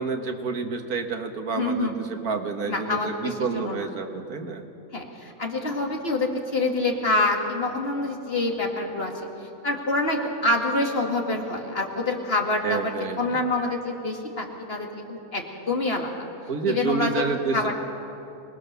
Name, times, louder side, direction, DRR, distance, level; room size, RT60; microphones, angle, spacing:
voice 1, 0.0-4.6 12.6-13.4 16.5-17.7, right 4 dB, 80° right, 6 dB, 1.9 m, -29 dB
voice 2, 1.6-1.9 2.7-3.9 4.9-9.1 9.6-16.1 16.7-17.2 17.5-17.7, left 2 dB, 40° left, 2 dB, 2.4 m, -26 dB
25.5 x 20.0 x 6.8 m, 2.8 s
omnidirectional pair, 1.5 m